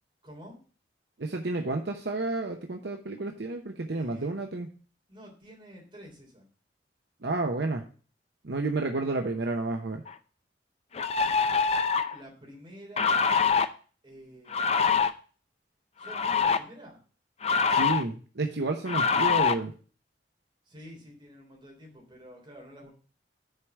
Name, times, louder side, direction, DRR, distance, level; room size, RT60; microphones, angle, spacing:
voice 1, 0.2-0.6 3.9-4.3 5.1-6.5 12.1-13.4 14.0-15.0 16.0-17.0 20.7-22.9, equal, 30° right, -1 dB, 3.1 m, -49 dB
voice 2, 1.2-4.7 7.2-7.8 8.4-10.0 17.7-19.7, right 2 dB, 65° right, 3 dB, 0.8 m, -31 dB
sound 1, 10.1-10.2 10.9-12.2 13.0-13.7 14.5-15.1 16.0-16.6 17.4-18.0 18.9-19.5, left 5 dB, 35° left, 0.5 m, -24 dB
6.7 x 4.8 x 6.8 m, 0.39 s
head